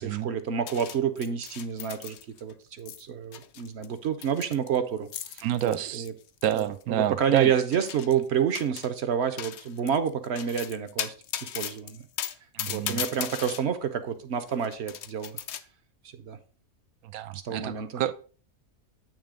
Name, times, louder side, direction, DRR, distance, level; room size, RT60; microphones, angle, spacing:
voice 1, 0.0-6.1 6.5-11.1 11.5-12.1 12.7-15.4 16.2-16.4 17.3-18.0, right 7 dB, 60° right, 0.8 m, -29 dB
sound 1, 0.7-2.5 2.8-3.0 3.3-6.8 7.4-8.2 8.5-9.0 9.4-13.6 14.4-15.6, left 10 dB, 65° left, 0.7 m, -37 dB
voice 2, 5.4-6.0 6.4-7.5 12.5-13.0 17.0-18.1, right 11 dB, 85° right, 1.1 m, -28 dB
8.8 x 3.2 x 4.9 m
omnidirectional pair, 1.5 m